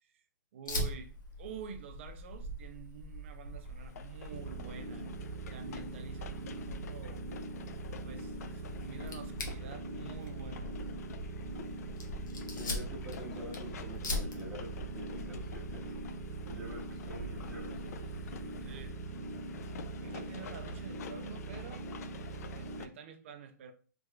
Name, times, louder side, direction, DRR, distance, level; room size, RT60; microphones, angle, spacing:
voice 1, 0.5-1.1 1.4-5.1 5.5-7.2 8.0-10.8 15.5-15.6 18.6-19.0 20.0-21.9 22.5-23.7, right 6 dB, 40° right, 0.4 m, -48 dB
Fire, 0.7-18.9, left 1 dB, 80° left, 1.1 m, -43 dB
sound 1, 3.6-22.9, left 6 dB, 55° left, 0.3 m, -50 dB
sound 2, 4.3-22.8, right 3 dB, 75° right, 0.9 m, -43 dB
voice 2, 12.6-15.8 16.4-18.1, right 1 dB, ahead, 0.8 m, -46 dB
3.4 x 3.0 x 2.3 m
hypercardioid pair, 160°, 10 cm